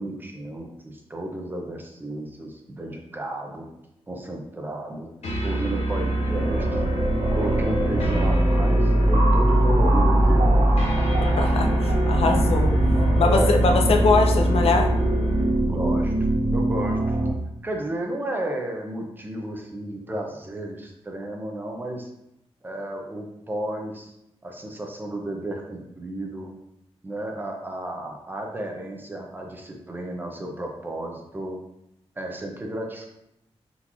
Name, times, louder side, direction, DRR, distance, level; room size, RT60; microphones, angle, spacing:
voice 1, 0.0-3.7 4.1-5.1 5.4-6.8 7.3-10.7 11.6-11.7 13.2-13.5 15.7-16.1 16.5-17.2 17.6-22.1 22.6-24.1 24.4-26.5 27.0-31.6 32.2-33.1, right 1 dB, 20° right, 1 dB, 0.5 m, -32 dB
sound 1, 5.2-15.6, equal, 85° left, 0.8 m, -22 dB
sound 2, 5.8-17.3, right 2 dB, 70° right, 0.7 m, -25 dB
voice 2, 11.2-11.7 12.1-12.7 13.1-14.9, left 4 dB, 65° left, 3 dB, 0.4 m, -22 dB
3.7 x 2.4 x 2.9 m, 0.82 s
wide cardioid pair, 170°, 11 cm